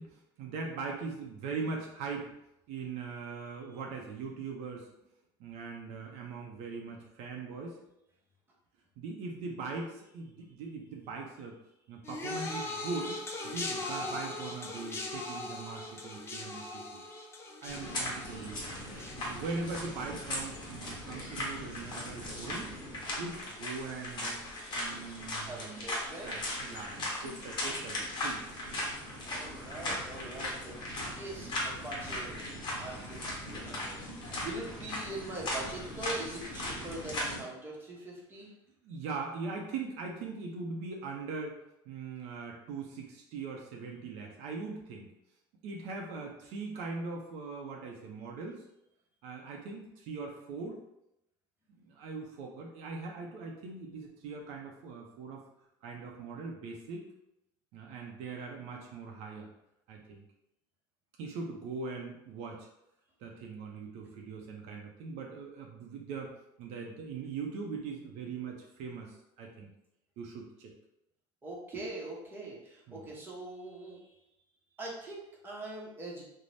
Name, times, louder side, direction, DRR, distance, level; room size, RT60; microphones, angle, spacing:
voice 1, 0.0-2.3 2.7-4.9 5.4-7.8 9.0-11.6 11.9-17.0 17.6-18.8 19.1-22.7 23.2-24.4 24.7-25.8 26.2-28.4 32.7-32.9 38.8-41.5 41.9-45.1 45.6-48.7 49.2-50.8 51.7-55.4 55.8-57.1 57.7-59.5 59.9-60.2 61.2-62.7 63.2-66.3 66.6-69.7 70.2-70.7 72.9-73.1, right 4 dB, 70° right, 0 dB, 0.5 m, -41 dB
sound 1, 12.0-21.4 21.7-22.2 23.1-23.2, left 2 dB, 20° left, 0.5 m, -41 dB
sound 2, 17.7-37.4, left 1 dB, 40° left, 1.0 m, -38 dB
voice 2, 25.4-26.3 29.2-32.4 32.8-38.5 71.4-74.2 74.8-76.2, right 2 dB, 20° right, -4 dB, 0.8 m, -43 dB
2.6 x 2.1 x 3.2 m, 0.84 s
cardioid pair, 130°, 12 cm